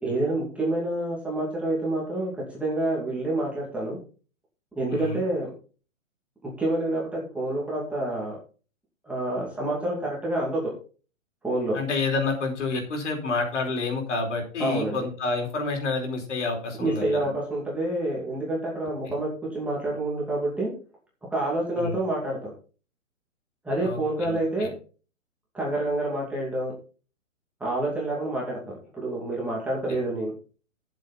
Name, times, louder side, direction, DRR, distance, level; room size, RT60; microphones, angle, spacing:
voice 1, 0.0-4.0 4.8-5.5 6.4-8.4 9.0-10.7 11.4-11.8 14.6-15.0 16.8-20.7 21.3-22.5 23.6-24.7 25.5-26.7 27.6-30.3, right 1 dB, 5° right, -5 dB, 2.5 m, -28 dB
voice 2, 4.9-5.2 11.7-17.3 19.1-19.2 21.8-22.0 23.8-24.7, left 3 dB, 60° left, 2 dB, 4.7 m, -29 dB
12.5 x 7.6 x 4.2 m, 0.37 s
hypercardioid pair, 165°, 40 cm